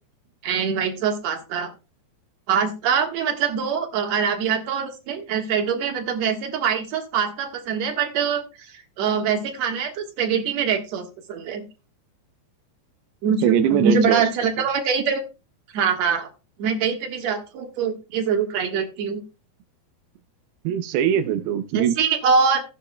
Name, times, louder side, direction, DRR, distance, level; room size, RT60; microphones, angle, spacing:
voice 1, 0.4-1.7 2.5-11.6 13.2-15.2 15.7-16.3 16.6-19.2 21.7-22.6, right 6 dB, 55° right, 2.2 m, -23 dB
voice 2, 13.4-14.2 14.6-14.7 20.6-22.0, right 9 dB, 85° right, 2.7 m, -21 dB
15.5 x 10.0 x 2.2 m
omnidirectional pair, 4.4 m